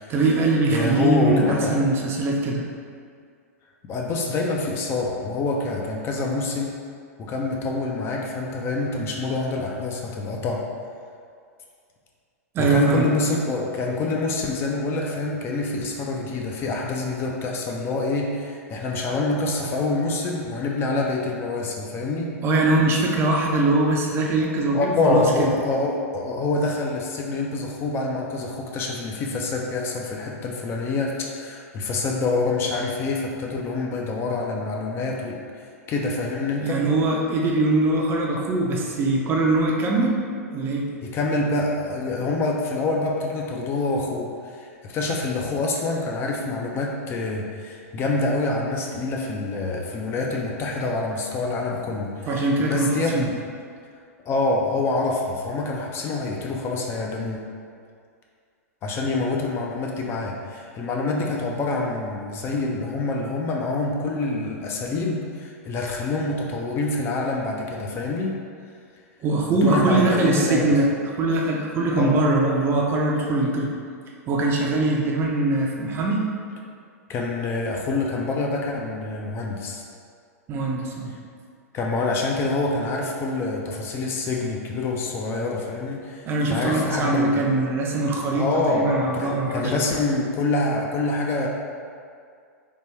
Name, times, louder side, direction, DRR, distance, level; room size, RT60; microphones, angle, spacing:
voice 1, 0.1-2.6 12.5-13.1 22.4-25.5 36.6-40.2 40.5-40.9 52.3-53.3 69.2-70.9 71.2-73.7 74.3-76.2 80.5-81.1 86.3-89.8, right 2 dB, 30° right, -1 dB, 0.5 m, -22 dB
voice 2, 0.7-1.8 3.9-6.7 7.2-10.6 12.6-22.3 24.7-36.8 41.0-53.3 54.3-57.4 58.8-68.3 69.5-70.7 72.0-72.2 77.1-79.8 81.7-87.5 88.3-91.5, left 3 dB, 30° left, -1 dB, 0.4 m, -26 dB
3.4 x 2.2 x 3.1 m, 2.2 s
hypercardioid pair, 105°, 8 cm